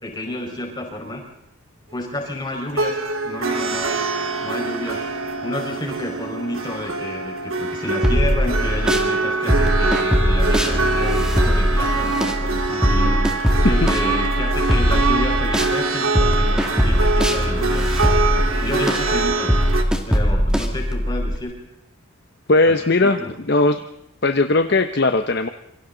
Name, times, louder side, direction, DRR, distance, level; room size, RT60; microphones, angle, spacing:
voice 1, 0.0-1.2 1.9-4.0 4.4-5.1 5.4-17.9 18.3-19.5 20.1-21.5 22.7-22.8 23.0-23.3, left 1 dB, 20° left, 1 dB, 5.2 m, -30 dB
sound 1, 2.7-19.8, right 3 dB, 70° right, 2.7 m, -24 dB
sound 2, 8.0-9.1 9.5-15.7 16.1-21.4, equal, 5° right, 2.1 m, -20 dB
voice 2, 22.5-23.2 23.5-23.8 24.2-25.5, left 2 dB, 50° left, 7 dB, 0.9 m, -18 dB
27.5 x 24.5 x 4.0 m, 0.84 s
head